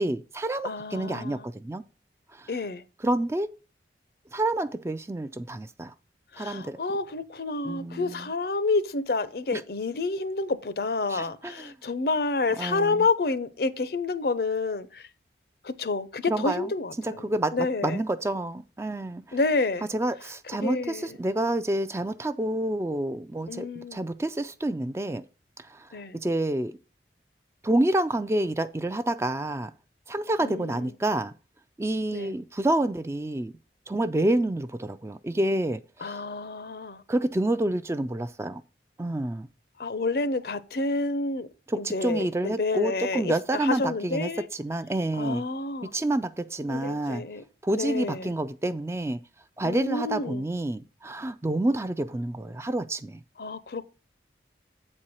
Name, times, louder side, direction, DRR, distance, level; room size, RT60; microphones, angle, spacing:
voice 1, 0.0-1.8 2.3-2.5 3.0-3.5 4.3-5.9 6.4-6.8 7.6-8.3 9.5-9.6 11.1-11.7 12.6-13.1 16.3-16.7 17.0-19.4 19.9-25.2 25.6-26.8 27.6-29.7 30.1-31.3 31.8-33.5 33.9-36.2 37.1-38.6 39.0-39.5 41.7-45.4 45.9-47.2 47.6-49.2 49.6-53.2, right 1 dB, 15° right, 0.3 m, -28 dB
voice 2, 0.6-1.5 2.5-2.8 6.3-15.1 15.6-17.3 17.5-18.0 19.3-19.9 20.6-21.2 23.5-24.0 25.9-26.2 30.4-30.9 32.1-32.3 36.0-37.0 39.8-41.5 41.8-44.5 45.2-45.9 46.7-47.4 47.7-48.3 49.6-50.5 53.4-53.8, left 3 dB, 60° left, 0.6 m, -29 dB
8.1 x 4.4 x 6.2 m
head